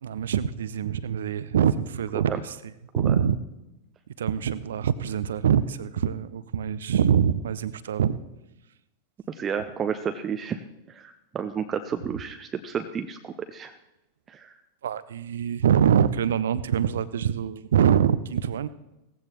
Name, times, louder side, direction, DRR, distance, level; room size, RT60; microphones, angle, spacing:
voice 1, 0.0-2.5 3.0-3.4 4.2-8.1 14.8-18.7, right 8 dB, 65° right, 16 dB, 0.6 m, -24 dB
voice 2, 9.3-10.6 10.9-13.7 14.3-14.5, right 7 dB, 25° right, 8 dB, 0.7 m, -31 dB
18.0 x 15.0 x 3.1 m, 0.93 s
figure-of-eight pair, 90°, 0 cm